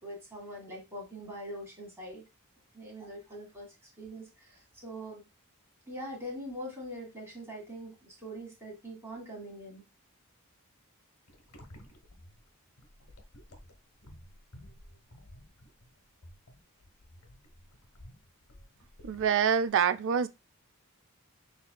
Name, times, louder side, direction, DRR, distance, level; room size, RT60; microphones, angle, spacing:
voice 1, 0.0-2.2 2.7-5.2 5.9-9.8, equal, 10° right, 2.2 m, -43 dB
sound 1, 11.3-19.7, left 1 dB, 85° left, 1.3 m, -53 dB
voice 2, 19.0-20.3, right 7 dB, 60° right, 0.4 m, -26 dB
6.4 x 3.5 x 2.3 m
head